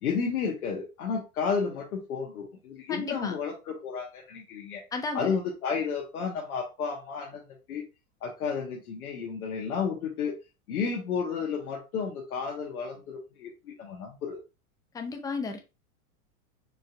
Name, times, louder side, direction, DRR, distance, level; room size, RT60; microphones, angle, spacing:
voice 1, 0.0-4.8 5.1-7.4 7.7-7.8 8.2-10.3 10.7-14.4, left 6 dB, 85° left, 1.1 m, -32 dB
voice 2, 2.9-3.3 4.9-5.3 14.9-15.6, left 4 dB, 10° left, 0.4 m, -33 dB
4.5 x 2.6 x 2.3 m
hypercardioid pair, 115°, 43 cm